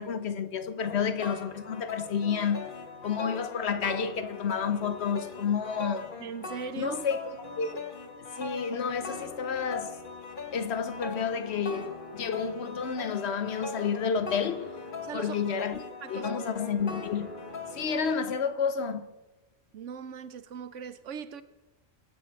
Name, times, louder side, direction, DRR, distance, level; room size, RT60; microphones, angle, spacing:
voice 1, 0.0-2.7 3.0-6.1 6.8-7.8 8.4-10.0 10.5-14.7 15.1-15.8 16.1-17.3 17.7-19.1, left 6 dB, 60° left, 1.0 m, -30 dB
sound 1, 0.8-18.1, left 4 dB, 45° left, 1.3 m, -41 dB
voice 2, 6.2-7.0 15.0-15.4 16.0-16.3 19.7-21.4, right 6 dB, 75° right, 1.1 m, -39 dB
23.0 x 8.5 x 4.6 m
omnidirectional pair, 1.3 m